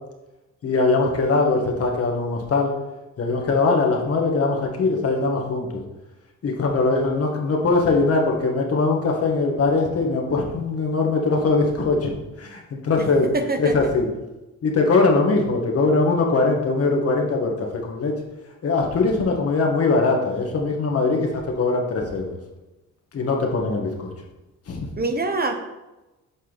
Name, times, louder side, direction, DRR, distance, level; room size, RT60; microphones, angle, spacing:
voice 1, 0.6-2.7 3.2-5.8 6.4-12.1 12.4-13.3 13.6-14.1 14.6-18.1 18.6-22.3 23.1-24.1 24.7-24.9, left 3 dB, 50° left, 1 dB, 1.7 m, -21 dB
voice 2, 13.3-13.9 25.0-25.5, right 3 dB, 30° right, 6 dB, 0.9 m, -24 dB
8.5 x 5.6 x 4.1 m, 1.0 s
cardioid pair, 90°, 30 cm